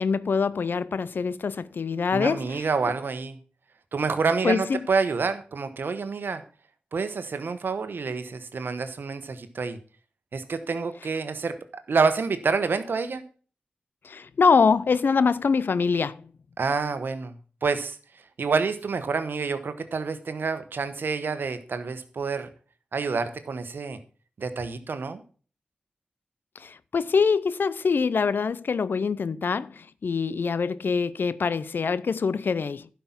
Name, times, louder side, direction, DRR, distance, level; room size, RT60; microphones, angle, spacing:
voice 1, 0.0-2.6 4.4-4.9 14.0-16.3 26.6-32.9, left 5 dB, 75° left, 0.5 m, -24 dB
voice 2, 2.1-3.4 3.9-6.4 6.9-9.8 10.3-13.2 16.6-22.5 22.9-24.0 24.4-25.2, right 4 dB, 75° right, 1.2 m, -28 dB
11.5 x 5.9 x 5.8 m
cardioid pair, 45°, 4 cm